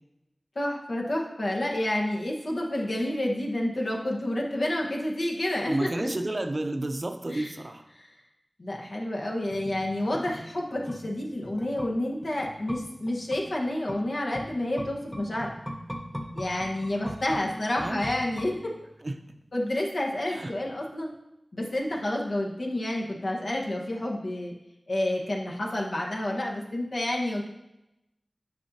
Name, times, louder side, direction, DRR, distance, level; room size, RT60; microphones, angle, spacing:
voice 1, 0.5-6.1 7.3-7.5 7.9-8.1 8.6-15.5 16.3-18.7 19.5-21.1 21.5-24.5 24.9-27.4, left 1 dB, 70° left, -2 dB, 1.3 m, -29 dB
voice 2, 5.7-7.9 17.3-17.4 17.8-18.0 19.0-19.2 20.3-20.5, right 1 dB, 45° right, 6 dB, 0.6 m, -31 dB
sound 1, 9.5-19.0 19.3-19.4, equal, ahead, 0.7 m, -41 dB
9.4 x 5.5 x 2.8 m, 0.91 s
wide cardioid pair, 65°, 0 cm